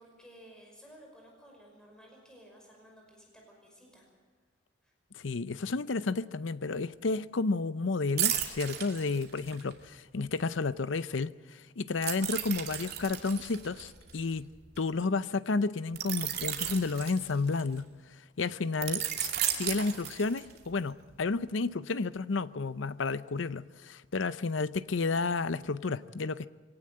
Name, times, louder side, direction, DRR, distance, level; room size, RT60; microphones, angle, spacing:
voice 1, 0.0-4.1 4.8-4.9, equal, 5° left, 5.6 m, -55 dB
voice 2, 5.1-14.5 14.8-17.9 18.4-26.5, left 3 dB, 80° left, 0.7 m, -31 dB
sound 1, 8.2-9.7 12.0-14.8 16.0-17.8 18.8-20.7 21.1-21.3, right 11 dB, 55° right, 2.4 m, -34 dB
23.5 x 18.0 x 7.8 m
head